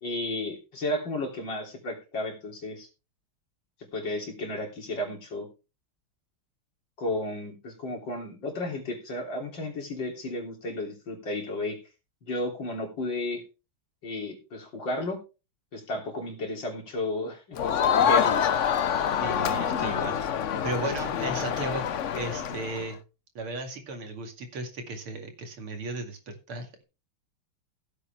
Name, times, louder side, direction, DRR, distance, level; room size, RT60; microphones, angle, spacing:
voice 1, 0.0-2.9 3.9-5.5 7.0-11.8 12.2-13.4 14.0-15.2 15.7-17.6 18.0-18.4, left 1 dB, 60° left, 1 dB, 3.9 m, -33 dB
Crowd, 17.6-22.9, left 8 dB, 80° left, 0.6 m, -26 dB
voice 2, 19.2-20.2 20.6-21.8 22.1-23.0 23.3-26.8, right 2 dB, 85° right, 4 dB, 3.2 m, -35 dB
16.0 x 8.4 x 3.4 m, 0.30 s
omnidirectional pair, 2.3 m